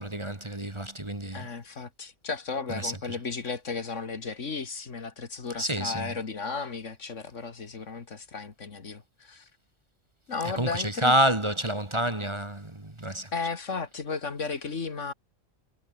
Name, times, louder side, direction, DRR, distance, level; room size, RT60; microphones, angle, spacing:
voice 1, 0.0-1.5 2.7-2.9 5.6-6.1 10.4-13.3, right 1 dB, 20° right, 2.0 m, -28 dB
voice 2, 1.3-9.5 10.3-11.1 13.3-15.1, left 4 dB, 65° left, 2.3 m, -34 dB
omnidirectional pair, 1.3 m